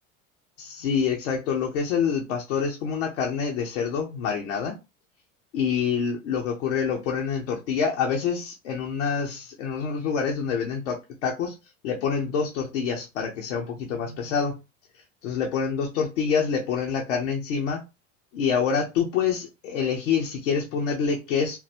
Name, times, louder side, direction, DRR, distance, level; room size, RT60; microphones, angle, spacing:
voice 1, 0.6-4.8 5.5-11.5 11.8-14.6 15.2-17.8 18.3-21.6, left 6 dB, 75° left, 0.9 m, -26 dB
3.8 x 2.3 x 2.9 m
hypercardioid pair, 80°, 37 cm